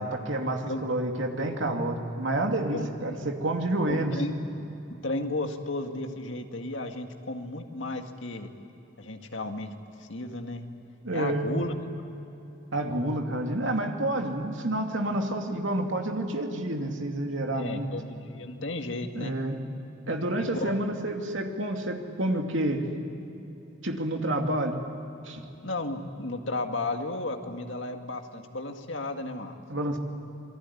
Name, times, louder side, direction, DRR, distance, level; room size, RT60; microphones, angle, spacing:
voice 1, 0.0-4.2 11.0-11.5 12.7-17.9 19.1-19.6 20.1-22.8 23.8-24.8 25.2-25.4 29.7-30.0, right 1 dB, 70° right, 3 dB, 2.7 m, -29 dB
voice 2, 2.7-3.2 3.8-4.3 4.9-8.5 9.0-10.7 11.1-11.7 17.5-19.3 20.4-20.8 25.6-29.6, left 2 dB, 70° left, 4 dB, 2.1 m, -34 dB
27.5 x 21.5 x 9.9 m, 2.9 s
head